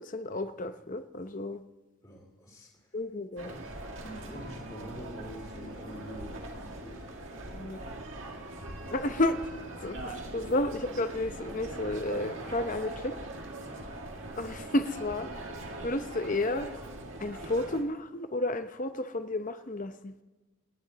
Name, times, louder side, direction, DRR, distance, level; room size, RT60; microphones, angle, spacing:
voice 1, 0.1-1.6 2.9-3.5 7.5-7.8 8.9-9.4 9.8-13.2 14.4-15.3 15.8-16.7 17.2-20.1, left 2 dB, 35° left, 9 dB, 0.7 m, -31 dB
voice 2, 2.0-3.0 3.4-3.7 3.9-7.6 13.6-13.9, equal, 20° left, -4 dB, 2.5 m, -46 dB
sound 1, 3.4-17.8, right 1 dB, 60° right, 1.9 m, -41 dB
26.0 x 10.5 x 4.1 m, 1.2 s
head